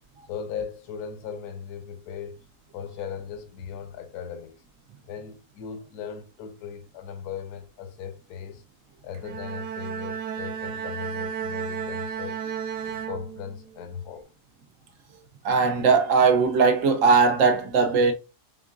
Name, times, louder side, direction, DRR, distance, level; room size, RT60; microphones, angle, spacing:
voice 1, 0.3-2.4 2.7-4.6 5.1-8.6 9.0-12.4 12.9-14.3, left 7 dB, 75° left, 1.3 m, -38 dB
Bowed string instrument, 9.1-13.8, right 7 dB, 85° right, 1.2 m, -33 dB
voice 2, 15.4-18.1, right 5 dB, 65° right, 0.9 m, -19 dB
4.4 x 3.6 x 2.5 m
omnidirectional pair, 1.7 m